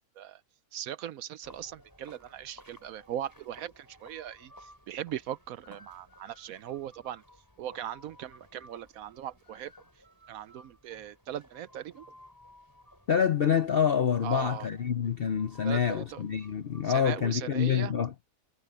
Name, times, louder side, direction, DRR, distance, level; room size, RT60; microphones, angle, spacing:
voice 1, 0.7-4.5 4.9-7.2 7.6-9.7 10.3-12.1 14.2-14.7 15.6-16.2 16.8-17.9, right 11 dB, 70° right, 0.9 m, -39 dB
sound 1, 1.4-17.1, left 1 dB, 10° left, 7.3 m, -57 dB
voice 2, 13.1-18.1, left 8 dB, 60° left, 0.6 m, -27 dB
omnidirectional pair, 1.7 m